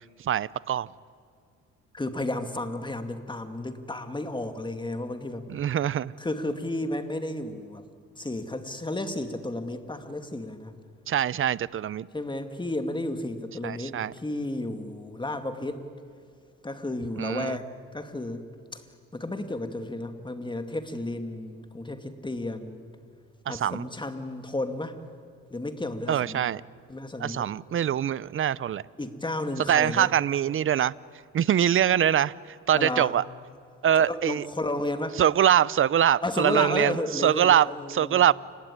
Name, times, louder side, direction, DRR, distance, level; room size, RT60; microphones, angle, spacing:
voice 1, 0.2-0.9 5.5-6.1 11.1-12.1 13.6-14.1 17.2-17.6 23.5-23.9 26.1-26.6 27.2-28.8 29.7-30.9 31.3-33.2 33.8-34.4 35.2-38.3, right 10 dB, 45° right, 21 dB, 0.6 m, -23 dB
voice 2, 1.9-5.5 6.2-7.8 8.2-10.7 12.1-15.8 16.6-18.5 18.7-18.8 19.1-22.9 23.5-25.0 25.5-26.5 26.9-27.5 29.0-30.1 32.7-33.2 34.0-35.2 36.2-38.2, left 1 dB, 15° left, 8 dB, 2.2 m, -32 dB
29.5 x 17.0 x 9.8 m, 2.2 s
cardioid pair, 90°, 30 cm